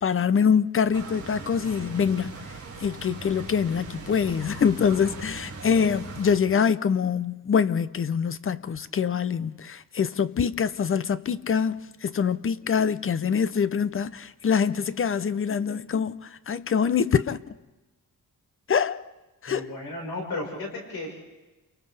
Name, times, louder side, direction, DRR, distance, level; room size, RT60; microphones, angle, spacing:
voice 1, 0.0-2.4 2.8-17.5 18.7-19.0 19.4-19.7, left 7 dB, 35° left, 0.6 m, -25 dB
sound 1, 0.9-6.4, right 4 dB, 40° right, 4.2 m, -40 dB
voice 2, 19.5-21.1, left 2 dB, 85° left, 5.3 m, -34 dB
30.0 x 29.0 x 3.4 m
wide cardioid pair, 145°, 36 cm